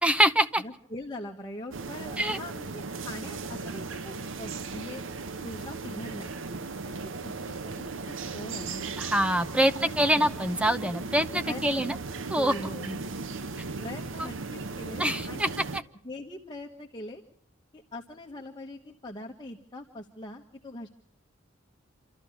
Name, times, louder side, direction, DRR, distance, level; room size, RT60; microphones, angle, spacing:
voice 1, 0.0-0.6 2.2-2.4 9.0-11.9 12.3-12.5 14.2-14.3 15.0-15.8, right 1 dB, 5° right, 8 dB, 0.8 m, -25 dB
voice 2, 0.6-5.0 5.4-6.4 6.8-8.9 9.6-10.3 11.1-11.9 12.3-13.1 13.8-15.6 16.0-17.2 17.7-20.9, left 1 dB, 20° left, 1 dB, 1.3 m, -42 dB
sound 1, 1.7-15.8, right 4 dB, 70° right, 0.8 m, -37 dB
27.5 x 13.5 x 7.2 m, 0.71 s
head